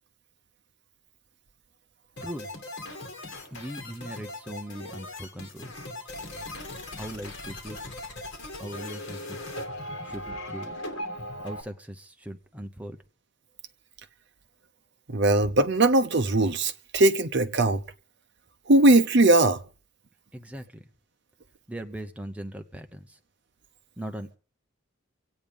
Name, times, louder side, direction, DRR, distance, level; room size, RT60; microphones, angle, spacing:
sound 1, 2.2-11.6, left 1 dB, 55° left, 2.6 m, -39 dB
voice 1, 3.5-5.8 7.0-7.8 8.6-9.4 10.0-10.7 11.4-13.0 20.3-20.9 21.7-23.2 24.0-24.4, right 1 dB, 5° right, 0.8 m, -39 dB
voice 2, 15.1-17.8 18.7-19.6, right 2 dB, 55° right, 0.8 m, -20 dB
24.5 x 8.7 x 5.2 m
head